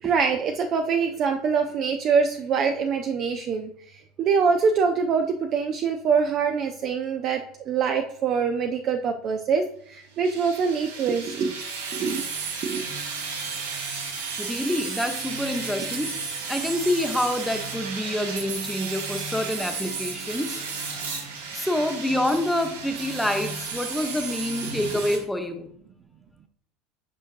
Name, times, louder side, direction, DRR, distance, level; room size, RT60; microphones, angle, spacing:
voice 1, 0.0-3.7 4.2-7.4 7.7-11.5 11.9-12.2 12.6-12.9, right 5 dB, 40° right, 5 dB, 0.5 m, -24 dB
sound 1, 10.2-25.2, right 4 dB, 70° right, 1.5 m, -33 dB
voice 2, 14.4-16.1 16.5-20.6 21.5-25.7, left 1 dB, 5° left, 6 dB, 0.8 m, -27 dB
8.2 x 5.8 x 2.6 m, 0.64 s
figure-of-eight pair, 70°, 0 cm